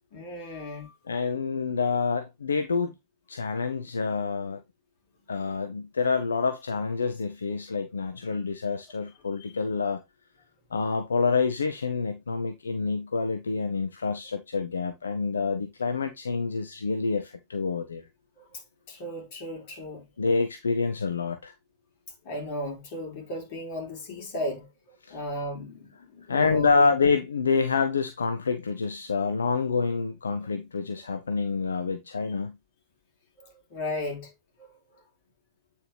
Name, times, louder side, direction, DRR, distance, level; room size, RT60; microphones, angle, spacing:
voice 1, 0.1-0.9 18.4-18.6 18.9-20.0 22.2-24.7 25.1-26.9 33.4-34.3 34.6-34.7, equal, 45° left, 3.9 m, -35 dB
voice 2, 1.1-2.9 3.3-4.6 5.3-10.0 10.7-18.0 20.2-21.5 25.1-25.2 26.3-32.5, left 4 dB, 75° left, 0.7 m, -27 dB
8.9 x 4.6 x 3.3 m
figure-of-eight pair, 90°, 0 cm